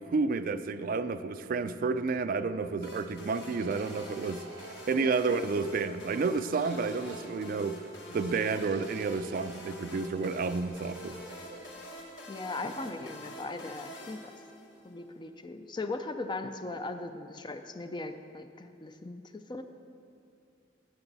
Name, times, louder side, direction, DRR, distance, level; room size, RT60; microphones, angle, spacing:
voice 1, 0.1-4.4 4.9-7.8 8.1-11.2, right 4 dB, 45° right, 11 dB, 0.3 m, -30 dB
sound 1, 2.8-15.0, left 1 dB, 70° left, 1.4 m, -47 dB
sound 2, 3.5-5.8 6.4-7.3 8.1-9.8 10.6-12.1, right 3 dB, 85° right, 1.0 m, -52 dB
voice 2, 12.3-14.3 14.8-19.6, left 3 dB, 25° left, 8 dB, 0.4 m, -38 dB
16.0 x 6.9 x 4.0 m, 2.5 s
head